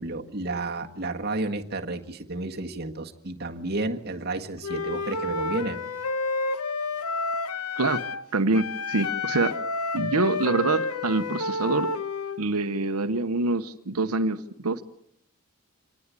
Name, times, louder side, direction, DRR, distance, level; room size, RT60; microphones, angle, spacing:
voice 1, 0.0-5.8, right 2 dB, 45° right, 3 dB, 1.6 m, -31 dB
Wind instrument woodwind instrument, 4.6-8.3 8.5-12.4, left 3 dB, 90° left, 1.2 m, -30 dB
voice 2, 8.3-9.6 9.9-11.9 12.4-14.8, right 3 dB, 85° right, 8 dB, 1.0 m, -25 dB
26.0 x 19.5 x 8.4 m, 0.73 s
head